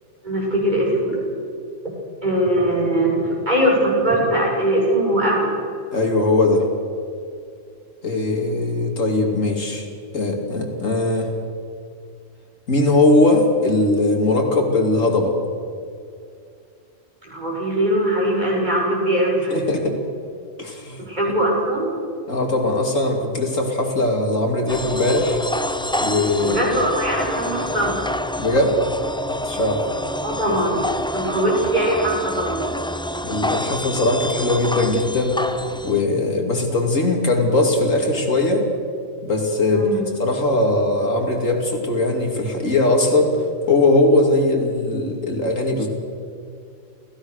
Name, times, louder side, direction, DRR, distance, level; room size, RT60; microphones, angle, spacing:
voice 1, 0.2-1.2 2.2-5.5 17.2-19.6 21.0-21.9 26.4-28.0 30.2-30.8 31.1-32.7 39.7-40.0, right 1 dB, 35° right, -4 dB, 7.1 m, -21 dB
voice 2, 5.9-6.7 8.0-9.8 10.1-11.3 12.7-15.3 19.5-20.0 20.6-21.0 22.3-25.4 26.0-26.6 28.4-28.8 29.4-29.8 30.7-30.8 33.2-35.4 35.8-38.6 39.2-39.9 40.2-43.4 43.7-45.9, left 2 dB, 85° left, 1 dB, 3.2 m, -20 dB
sound 1, 24.7-36.0, left 1 dB, 5° left, 0.4 m, -27 dB
29.0 x 16.0 x 6.5 m, 2.4 s
omnidirectional pair, 1.3 m